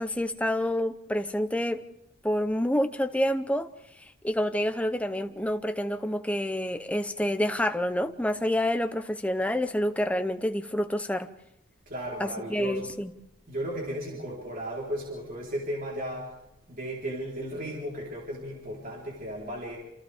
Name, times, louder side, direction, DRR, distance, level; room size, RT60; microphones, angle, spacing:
voice 1, 0.0-1.8 2.2-3.7 4.2-11.3 12.2-13.1, left 1 dB, 5° left, 0.7 m, -28 dB
voice 2, 11.9-12.8 13.5-16.3 16.7-19.8, right 1 dB, 40° right, 4.0 m, -35 dB
27.5 x 27.5 x 3.6 m
head